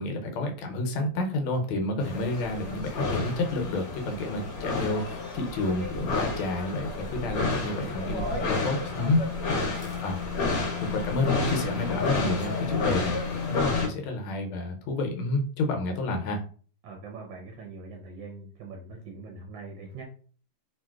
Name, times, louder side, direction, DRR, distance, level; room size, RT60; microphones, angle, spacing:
voice 1, 0.0-9.2 10.0-10.2 10.8-13.2 13.5-16.4, left 2 dB, 85° left, 3 dB, 1.5 m, -29 dB
sound 1, 2.0-13.9, left 3 dB, 60° left, 1.1 m, -30 dB
voice 2, 9.5-9.8 16.8-20.0, right 3 dB, 70° right, 1 dB, 1.2 m, -42 dB
3.1 x 2.8 x 2.3 m, 0.41 s
omnidirectional pair, 2.3 m